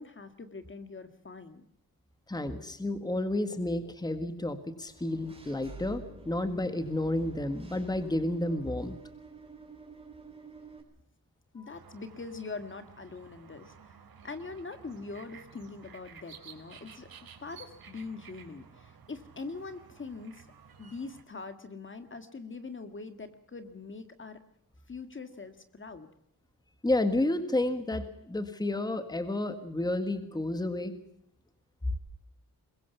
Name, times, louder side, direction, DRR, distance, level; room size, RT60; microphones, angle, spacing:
voice 1, 0.0-1.6 11.5-14.0 14.2-17.1 17.4-20.5 20.8-24.4 24.9-26.1, left 4 dB, 35° left, 9 dB, 1.8 m, -43 dB
voice 2, 2.3-8.9 26.8-31.0, left 1 dB, 10° left, 9 dB, 1.7 m, -31 dB
Engine / Mechanisms, 4.9-10.8, right 4 dB, 15° right, 4.7 m, -48 dB
sound 1, 11.7-21.2, right 6 dB, 70° right, 4.1 m, -53 dB
22.5 x 22.0 x 6.9 m, 0.77 s
wide cardioid pair, 160°, 36 cm